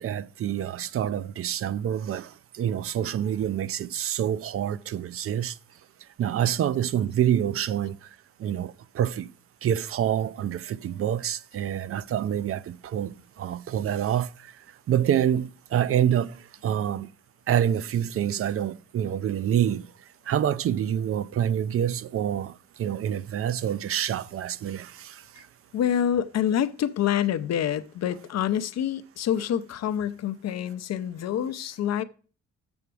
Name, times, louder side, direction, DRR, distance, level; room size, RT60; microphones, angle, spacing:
voice 1, 0.0-5.6 6.2-8.1 8.4-9.3 9.6-14.5 14.9-17.1 17.5-19.9 20.3-25.4, right 10 dB, 50° right, 0.5 m, -27 dB
voice 2, 25.7-32.0, left 10 dB, 60° left, 0.6 m, -27 dB
7.1 x 6.7 x 4.6 m
cardioid pair, 90°, 30 cm